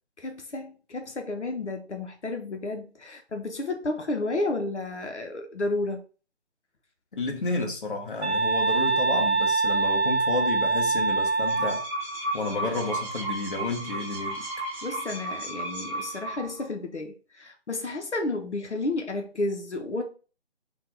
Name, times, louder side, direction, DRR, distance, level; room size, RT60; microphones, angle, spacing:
voice 1, 0.2-6.0 14.8-20.0, left 2 dB, 85° left, 0.9 m, -31 dB
voice 2, 7.1-11.8 12.3-14.5, left 3 dB, 50° left, 1.1 m, -31 dB
sound 1, 8.2-11.9, right 4 dB, 75° right, 0.5 m, -24 dB
sound 2, 11.2-16.6, right 2 dB, ahead, 0.9 m, -34 dB
3.5 x 2.4 x 4.4 m
figure-of-eight pair, 155°, 34 cm